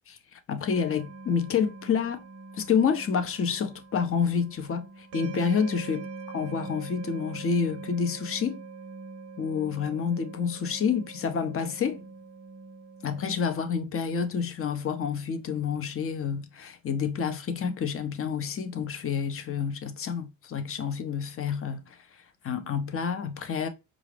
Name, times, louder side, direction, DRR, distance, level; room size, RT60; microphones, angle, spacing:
voice 1, 0.1-2.2 2.5-6.0 6.3-8.6 9.4-12.0 13.0-23.7, left 6 dB, 35° left, 0.7 m, -29 dB
sound 1, 0.7-13.8, right 4 dB, 40° right, 0.6 m, -43 dB
4.6 x 2.5 x 3.3 m
supercardioid pair, 65°, 36 cm